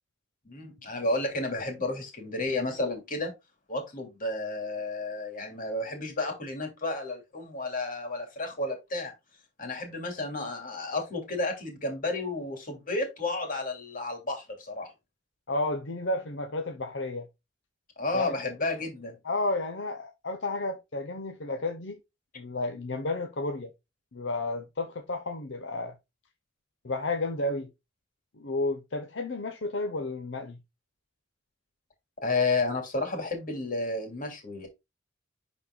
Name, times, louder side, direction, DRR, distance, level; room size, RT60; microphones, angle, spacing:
voice 1, 0.4-3.3 3.7-9.1 9.6-14.9 18.0-19.2 32.2-34.7, left 2 dB, 45° left, 2.9 m, -32 dB
voice 2, 15.5-17.3 18.1-18.4 19.2-22.0 22.3-23.7 24.1-25.9 26.8-27.7 28.3-30.6, left 2 dB, 65° left, 0.9 m, -32 dB
11.0 x 4.3 x 2.3 m
head